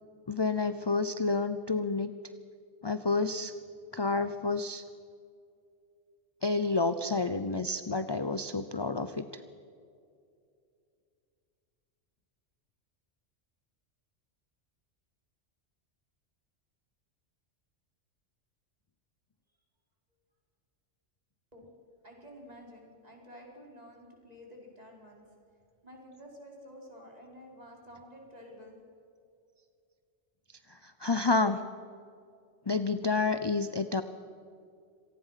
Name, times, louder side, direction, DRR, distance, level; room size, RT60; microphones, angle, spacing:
voice 1, 0.3-2.1 2.8-3.5 3.9-4.8 6.4-9.2 30.7-31.6 32.7-34.0, left 3 dB, 25° left, 10 dB, 0.6 m, -29 dB
voice 2, 22.0-25.2 25.8-28.8, equal, 35° right, -1 dB, 5.0 m, -51 dB
26.5 x 18.5 x 5.9 m, 2.4 s
omnidirectional pair, 1.2 m